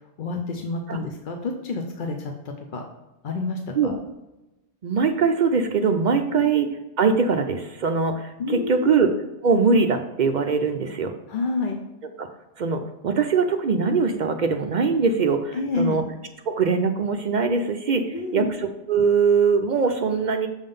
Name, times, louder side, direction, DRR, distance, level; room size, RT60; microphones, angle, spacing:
voice 1, 0.0-2.8 3.2-4.0 6.3-6.5 8.4-9.0 11.3-11.8 15.5-16.0 18.1-18.5, left 3 dB, 55° left, 3 dB, 0.7 m, -29 dB
voice 2, 4.8-6.7 7.0-9.1 9.4-11.1 12.2-12.3 12.6-16.0 16.5-18.4 18.9-20.5, right 5 dB, 55° right, 6 dB, 0.5 m, -22 dB
7.1 x 3.7 x 5.2 m, 1.0 s
omnidirectional pair, 1.1 m